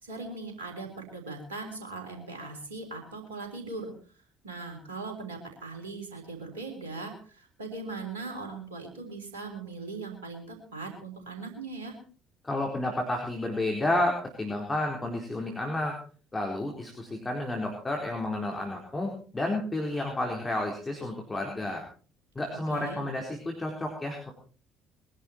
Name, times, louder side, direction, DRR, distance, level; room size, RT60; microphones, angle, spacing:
voice 1, 0.0-3.9 4.4-12.0 22.7-23.0, right 3 dB, 75° right, 3 dB, 3.6 m, -39 dB
voice 2, 12.4-15.9 16.3-21.8 22.4-24.3, left 1 dB, 20° left, 1 dB, 4.1 m, -31 dB
21.5 x 11.0 x 4.4 m, 0.40 s
figure-of-eight pair, 50°, 0 cm